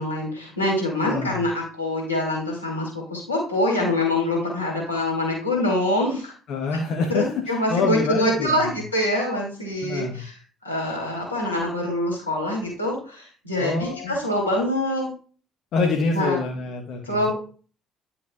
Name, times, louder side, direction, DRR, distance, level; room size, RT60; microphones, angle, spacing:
voice 1, 0.0-6.3 7.1-10.3 10.6-15.1 16.1-16.4 17.1-17.3, left 1 dB, 85° left, -1 dB, 2.4 m, -25 dB
voice 2, 1.0-1.4 6.5-8.6 9.8-10.3 13.6-14.2 15.7-17.3, left 4 dB, 55° left, 2 dB, 1.0 m, -26 dB
10.5 x 5.8 x 2.4 m, 0.40 s
figure-of-eight pair, 50°, 0 cm